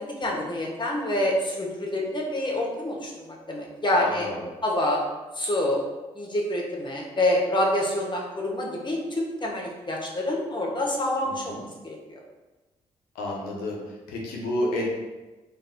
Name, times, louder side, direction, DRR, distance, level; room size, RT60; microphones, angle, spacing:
voice 1, 0.0-4.3 4.6-5.0 5.4-5.8 6.1-12.2, left 1 dB, 30° left, -1 dB, 1.0 m, -27 dB
voice 2, 3.9-4.5 11.4-11.6 13.1-13.8 14.1-14.9, left 1 dB, 85° left, -2 dB, 0.7 m, -30 dB
4.0 x 2.6 x 2.6 m, 1.2 s
hypercardioid pair, 40°, 15 cm